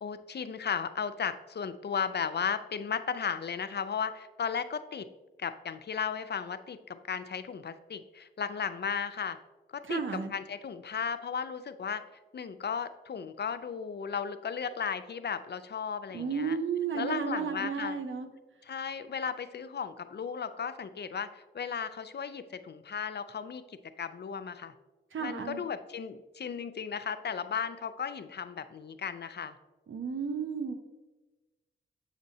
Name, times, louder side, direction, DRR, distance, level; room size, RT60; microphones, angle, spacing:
voice 1, 0.0-5.1 5.4-9.4 9.7-10.0 10.3-12.0 12.3-16.6 16.9-18.0 18.7-24.7 25.2-29.5, left 6 dB, 55° left, 11 dB, 0.5 m, -35 dB
voice 2, 9.8-10.3 16.1-18.3 25.1-25.6 29.9-30.7, right 6 dB, 70° right, 7 dB, 0.7 m, -33 dB
7.8 x 5.1 x 2.7 m, 1.2 s
cardioid pair, 45°, 21 cm